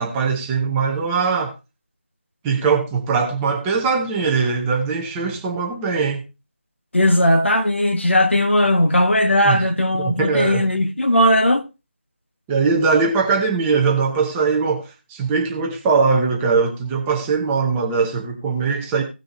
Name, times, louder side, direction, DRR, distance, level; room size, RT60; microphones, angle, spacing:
voice 1, 0.0-1.5 2.4-6.2 9.4-9.6 10.0-10.6 12.5-19.0, right 5 dB, 10° right, 0.9 m, -21 dB
voice 2, 6.9-11.7, left 1 dB, 70° left, 1.7 m, -17 dB
17.0 x 6.4 x 2.8 m
figure-of-eight pair, 165°, 7 cm